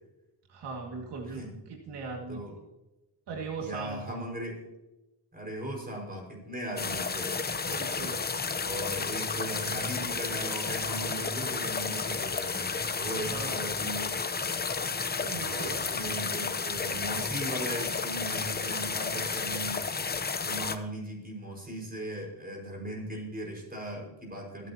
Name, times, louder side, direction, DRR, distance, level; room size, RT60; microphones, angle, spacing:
voice 1, 0.5-1.4 1.7-2.4 3.3-4.2 7.7-8.2 13.2-13.6 15.2-15.9, right 4 dB, 85° right, 0 dB, 2.2 m, -39 dB
voice 2, 3.6-4.6 5.3-7.4 8.6-14.1 15.3-19.9 20.4-24.7, right 1 dB, 20° right, 0 dB, 5.4 m, -38 dB
sound 1, 6.8-20.8, left 5 dB, 25° left, 0.8 m, -32 dB
21.5 x 9.4 x 2.9 m, 0.99 s
cardioid pair, 110°, 40 cm